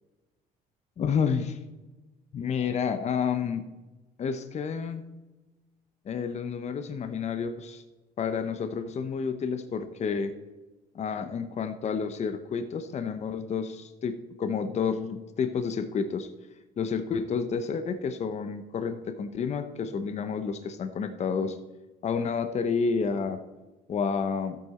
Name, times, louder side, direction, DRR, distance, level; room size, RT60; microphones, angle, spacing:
voice 1, 1.0-1.6 2.3-3.7 4.2-5.0 6.0-7.8 8.2-10.3 10.9-16.3 16.8-21.6 22.0-23.4 23.9-24.6, left 6 dB, 40° left, 8 dB, 0.9 m, -30 dB
13.0 x 8.7 x 4.3 m, 1.1 s
cardioid pair, 110°, 17 cm